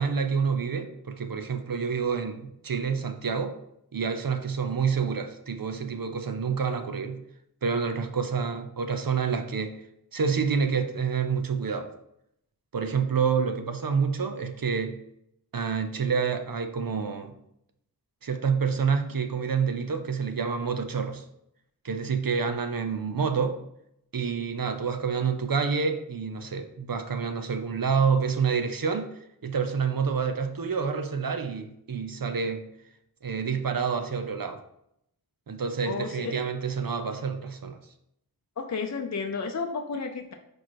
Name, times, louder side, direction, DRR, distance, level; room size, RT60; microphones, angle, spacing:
voice 1, 0.0-3.6 3.9-7.2 7.6-9.8 10.1-11.9 12.7-15.0 15.5-17.3 18.2-21.2 21.8-23.6 24.1-32.6 33.2-34.6 35.5-37.8, right 5 dB, 65° right, 7 dB, 0.7 m, -28 dB
voice 2, 35.8-36.3 38.6-40.3, left 5 dB, 45° left, 4 dB, 0.5 m, -32 dB
4.7 x 4.6 x 4.3 m, 0.78 s
wide cardioid pair, 60°, 38 cm